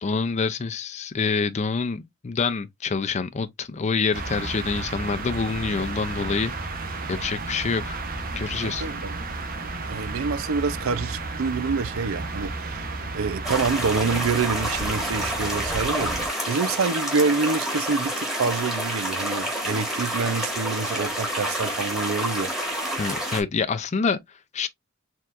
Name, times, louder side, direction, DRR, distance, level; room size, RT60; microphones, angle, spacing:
voice 1, 0.0-6.5 7.1-8.0 8.4-8.9 23.0-24.2 24.5-24.7, left 5 dB, 35° left, 0.4 m, -26 dB
sound 1, 4.1-16.3, right 3 dB, 45° right, 0.9 m, -33 dB
voice 2, 8.6-9.2 9.9-12.9 13.1-22.5, right 4 dB, 80° right, 0.5 m, -27 dB
sound 2, 13.4-23.4, equal, ahead, 1.6 m, -28 dB
4.5 x 3.6 x 2.4 m
head